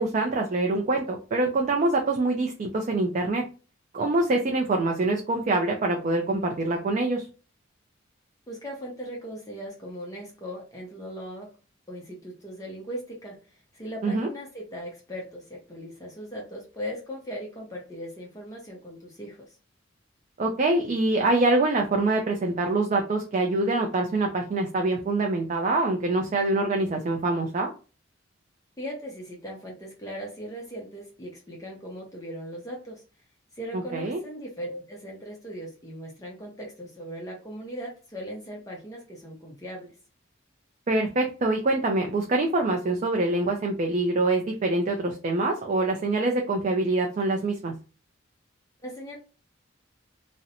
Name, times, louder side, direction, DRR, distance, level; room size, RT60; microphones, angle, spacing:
voice 1, 0.0-3.4 3.9-7.3 14.0-14.3 20.4-27.7 33.7-34.2 40.9-47.7, right 2 dB, 40° right, 2 dB, 0.3 m, -25 dB
voice 2, 8.5-11.5 11.9-13.4 13.7-19.4 28.8-33.0 33.5-39.9 48.8-49.2, equal, 15° left, -2 dB, 0.6 m, -38 dB
2.5 x 2.0 x 2.8 m, 0.34 s
head